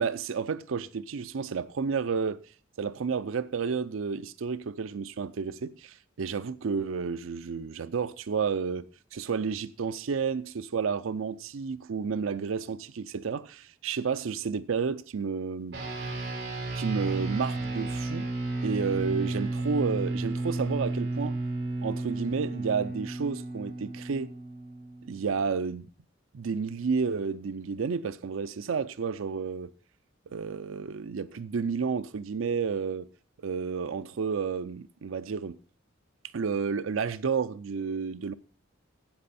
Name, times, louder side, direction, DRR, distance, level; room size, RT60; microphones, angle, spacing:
voice 1, 0.0-2.4 2.8-15.8 16.8-18.2 18.6-21.4 21.8-24.3 25.1-25.9 26.3-29.7 30.3-33.1 33.4-35.6 36.3-38.3, right 5 dB, 80° right, 0.5 m, -31 dB
sound 1, 15.7-25.4, right 2 dB, 60° right, 3.9 m, -33 dB
13.5 x 8.6 x 4.2 m
head